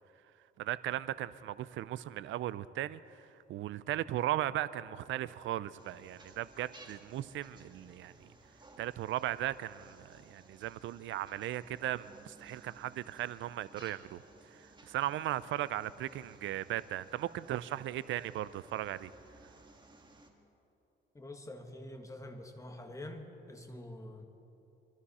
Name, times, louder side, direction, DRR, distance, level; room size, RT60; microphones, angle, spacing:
voice 1, 0.6-3.0 3.5-8.3 8.8-14.2 14.9-19.1, right 13 dB, 75° right, 17 dB, 0.5 m, -37 dB
sound 1, 5.8-20.3, right 2 dB, 20° right, 1.6 m, -59 dB
voice 2, 21.1-24.3, left 1 dB, 15° left, 4 dB, 1.6 m, -46 dB
24.0 x 12.5 x 4.3 m, 2.9 s
cardioid pair, 90°, 20 cm